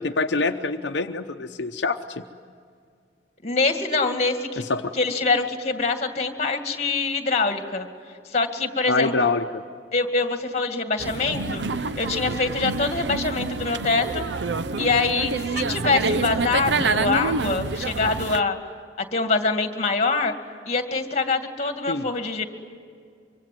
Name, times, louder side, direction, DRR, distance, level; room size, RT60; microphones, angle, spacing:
voice 1, 0.0-2.2 4.6-4.9 8.9-9.6 21.9-22.0, left 3 dB, 75° left, 4 dB, 0.8 m, -25 dB
voice 2, 3.4-4.6 4.9-7.9 8.3-9.3 9.9-11.6 11.9-14.2 14.8-18.6 19.1-20.3 20.7-22.4, left 3 dB, 40° left, 6 dB, 2.2 m, -24 dB
sound 1, 11.0-18.4, right 3 dB, 75° right, 0.7 m, -27 dB
24.5 x 24.5 x 9.4 m, 2.2 s
head